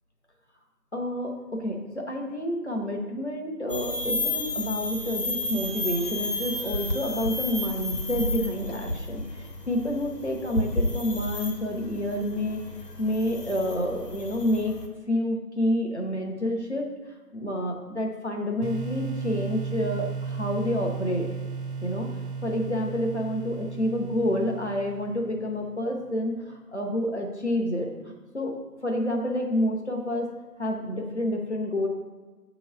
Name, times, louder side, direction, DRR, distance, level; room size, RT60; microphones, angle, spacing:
voice 1, 0.9-12.6 13.0-14.8 15.1-16.9 17.3-21.2 21.8-22.1 22.4-28.5 28.8-30.3 30.6-31.9, left 1 dB, 45° left, 1 dB, 0.8 m, -28 dB
sound 1, 3.7-14.9, left 1 dB, 90° left, 1.2 m, -32 dB
sound 2, 18.6-25.4, right 5 dB, 75° right, 1.3 m, -35 dB
6.2 x 3.1 x 4.9 m, 1.3 s
figure-of-eight pair, 170°, 47 cm